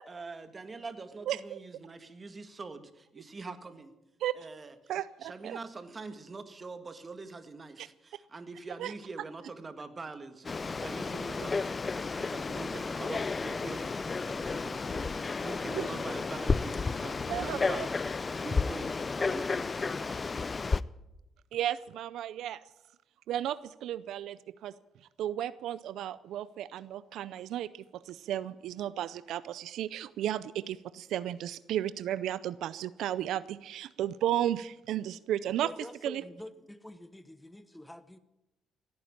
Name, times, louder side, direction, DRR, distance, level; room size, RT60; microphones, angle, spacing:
voice 1, 0.1-4.0 4.3-4.7 5.2-18.2 18.4-20.5, right 3 dB, 30° right, 9 dB, 1.7 m, -44 dB
voice 2, 1.3-1.6 4.2-4.3 4.9-5.6 7.8-7.9 8.8-8.9 15.7-15.9 17.3-17.9 21.5-22.6 23.3-24.7 25.2-35.7 36.0-36.2, right 11 dB, 80° right, 16 dB, 0.5 m, -34 dB
Frog, 10.4-20.8, left 4 dB, 30° left, 0.5 m, -32 dB
voice 3, 35.6-38.2, left 1 dB, 10° left, 13 dB, 1.1 m, -46 dB
17.0 x 9.6 x 8.8 m, 0.91 s
cardioid pair, 90°, 0 cm